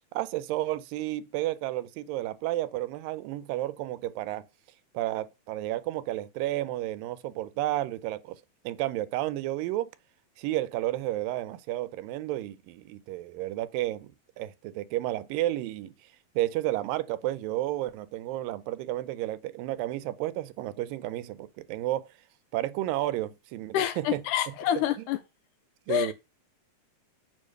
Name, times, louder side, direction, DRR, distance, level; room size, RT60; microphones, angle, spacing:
voice 1, 0.1-4.4 4.9-8.4 8.6-9.9 10.4-14.1 14.4-15.9 16.4-22.1 22.5-24.2 25.9-26.1, right 15 dB, 85° right, 2.3 m, -31 dB
voice 2, 23.7-25.2 25.9-26.1, left 12 dB, 80° left, 1.9 m, -27 dB
8.5 x 3.5 x 6.5 m
omnidirectional pair, 4.0 m